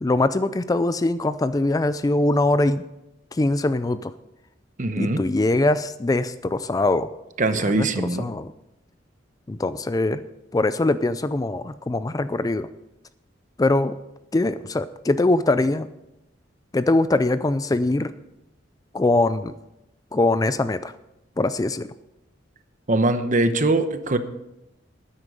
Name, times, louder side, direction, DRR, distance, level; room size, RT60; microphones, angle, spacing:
voice 1, 0.0-2.8 3.3-4.1 5.0-7.1 7.5-8.5 9.5-10.2 10.5-12.7 13.6-14.0 14.3-15.9 16.7-18.1 18.9-19.5 20.1-20.9 21.4-21.9, left 2 dB, 20° left, 13 dB, 0.4 m, -22 dB
voice 2, 4.8-5.2 7.4-8.3 22.9-24.2, right 2 dB, 40° right, 10 dB, 0.9 m, -22 dB
12.5 x 9.8 x 5.3 m, 0.89 s
head